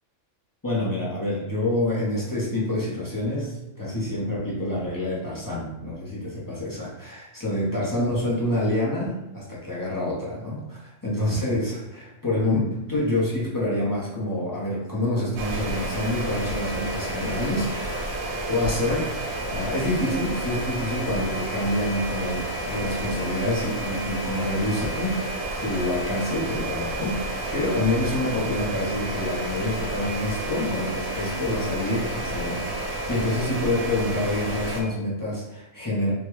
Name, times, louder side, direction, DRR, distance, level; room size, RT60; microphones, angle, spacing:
voice 1, 0.6-12.6 12.9-18.1 18.5-36.1, left 1 dB, 20° left, -7 dB, 0.6 m, -27 dB
sound 1, 15.4-34.8, right 1 dB, 80° right, 1.1 m, -30 dB
3.5 x 2.2 x 3.0 m, 0.92 s
omnidirectional pair, 1.4 m